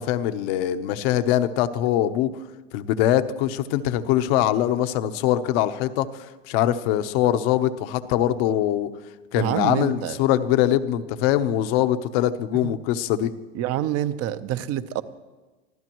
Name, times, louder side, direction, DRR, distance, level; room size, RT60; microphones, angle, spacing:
voice 1, 0.0-2.4 2.7-8.9 9.3-13.3, left 12 dB, 65° left, 10 dB, 1.1 m, -23 dB
voice 2, 9.4-10.2 12.6-12.7 13.5-15.0, right 11 dB, 50° right, 13 dB, 0.9 m, -26 dB
25.0 x 15.0 x 3.1 m, 1.2 s
supercardioid pair, 110°, 32 cm